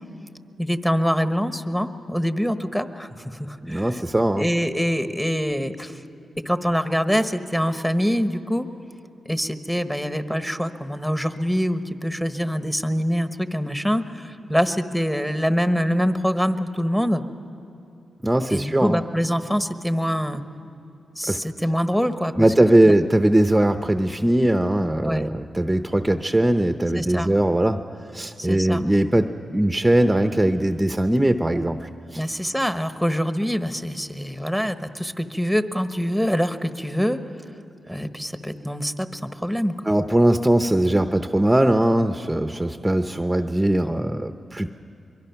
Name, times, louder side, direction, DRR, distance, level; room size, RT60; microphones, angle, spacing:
voice 1, 0.6-3.9 4.4-6.0 6.4-8.7 9.2-17.2 18.5-20.4 21.2-22.5 25.0-25.3 27.0-27.3 28.4-28.8 32.2-37.2 37.9-39.7, equal, 5° left, 9 dB, 1.2 m, -24 dB
voice 2, 3.6-4.5 18.2-19.0 21.3-21.4 22.4-27.8 28.1-32.2 39.8-44.7, right 1 dB, 15° right, 8 dB, 0.7 m, -20 dB
23.5 x 23.0 x 5.8 m, 2.8 s
cardioid pair, 55°, 0 cm